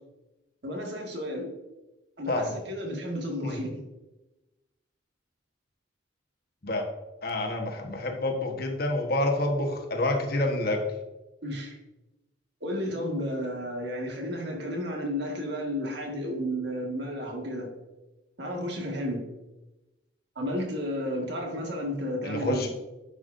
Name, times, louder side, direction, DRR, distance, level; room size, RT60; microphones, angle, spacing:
voice 1, 0.6-1.5 2.2-3.7 11.4-11.8 12.6-17.7 18.4-19.2 20.4-22.7, equal, 60° right, 0 dB, 1.8 m, -32 dB
voice 2, 7.2-10.8 22.2-22.7, left 1 dB, 50° left, 2 dB, 1.3 m, -28 dB
10.0 x 7.2 x 2.6 m, 1.0 s
head